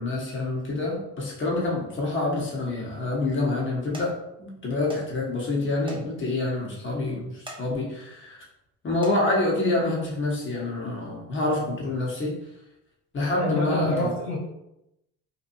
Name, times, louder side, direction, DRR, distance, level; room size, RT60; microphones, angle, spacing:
voice 1, 0.0-8.4 8.8-12.4 13.1-14.1, left 2 dB, 25° left, -3 dB, 1.0 m, -27 dB
sound 1, 3.9-4.1 4.9-5.1 5.4-5.5 5.9-6.0 6.4-6.5 7.3-7.6 8.1-8.4 8.9-9.2 10.1-10.3 10.8-10.9, right 1 dB, 10° right, 0.7 m, -42 dB
voice 2, 13.3-14.4, left 1 dB, 70° left, -3 dB, 0.9 m, -28 dB
2.8 x 2.3 x 2.6 m, 0.86 s
hypercardioid pair, 65°, 44 cm